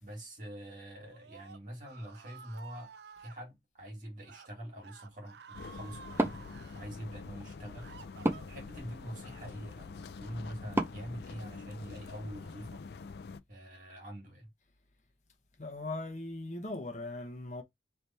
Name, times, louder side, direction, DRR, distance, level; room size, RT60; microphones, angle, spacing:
voice 1, 0.0-2.9 3.2-6.5 6.8-7.9 8.5-12.9 13.5-14.5, equal, 45° right, 1.8 m, -45 dB
Screaming, 1.0-3.4 4.1-4.5 4.8-6.9 7.4-8.8, right 6 dB, 75° right, 0.5 m, -52 dB
sound 1, 5.5-13.4, left 4 dB, 65° left, 0.4 m, -46 dB
Wood, 6.1-12.1, right 1 dB, 15° right, 0.4 m, -38 dB
voice 2, 15.6-17.6, left 2 dB, 40° left, 0.9 m, -39 dB
3.4 x 3.0 x 4.1 m
head